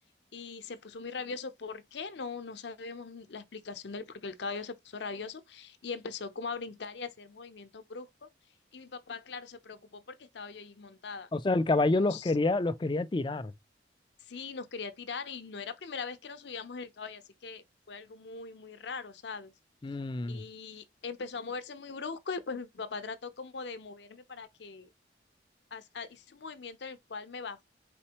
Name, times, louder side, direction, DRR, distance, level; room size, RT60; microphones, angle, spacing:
voice 1, 0.3-8.1 8.7-11.3 11.9-12.3 14.2-19.5 20.3-24.9 25.7-27.6, left 4 dB, 70° left, 0.6 m, -41 dB
voice 2, 11.3-13.5 19.8-20.5, left 2 dB, 25° left, 0.3 m, -28 dB
4.2 x 4.1 x 2.9 m
head